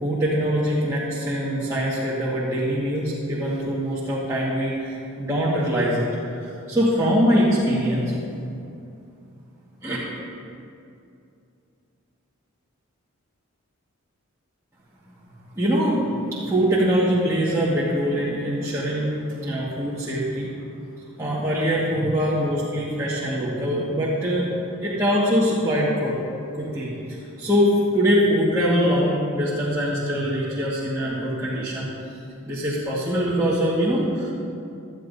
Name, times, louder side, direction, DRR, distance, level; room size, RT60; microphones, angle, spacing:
voice 1, 0.0-6.1 6.3-8.1 9.8-10.0 15.6-16.0 16.3-19.1 19.4-20.5 21.2-24.5 24.8-26.2 26.6-31.9 32.5-34.3, equal, 15° right, -10 dB, 1.6 m, -23 dB
17.0 x 11.5 x 2.7 m, 2.5 s
head